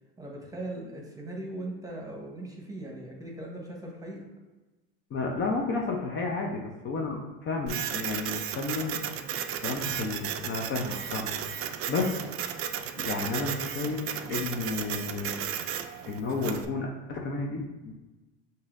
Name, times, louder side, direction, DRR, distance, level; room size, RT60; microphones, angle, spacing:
voice 1, 0.2-4.2, right 1 dB, 10° right, -1 dB, 0.9 m, -39 dB
voice 2, 5.1-9.0 9.6-12.1 13.0-15.4 16.0-17.9, left 3 dB, 40° left, 0 dB, 0.6 m, -32 dB
Printer, 7.7-16.6, right 9 dB, 50° right, 0.4 m, -34 dB
5.5 x 2.7 x 2.5 m, 1.1 s
supercardioid pair, 90°, 30 cm